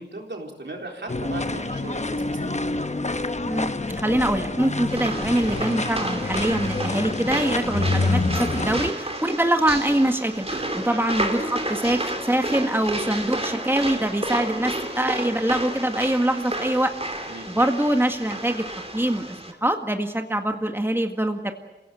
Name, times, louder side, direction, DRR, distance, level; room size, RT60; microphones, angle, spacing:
voice 1, 0.0-2.6 10.8-11.0 17.2-17.5, right 2 dB, 85° right, 1 dB, 3.8 m, -37 dB
sound 1, 1.1-8.9, left 2 dB, 40° left, 1.0 m, -27 dB
voice 2, 3.4-16.9 17.5-18.6 18.9-21.5, right 1 dB, 10° right, 5 dB, 1.8 m, -24 dB
sound 2, 4.9-19.5, right 1 dB, 35° right, 3.0 m, -31 dB
sound 3, 8.3-10.9 12.5-12.6, equal, 60° left, 2.7 m, -45 dB
27.0 x 16.5 x 9.1 m, 1.1 s
wide cardioid pair, 50°, 18 cm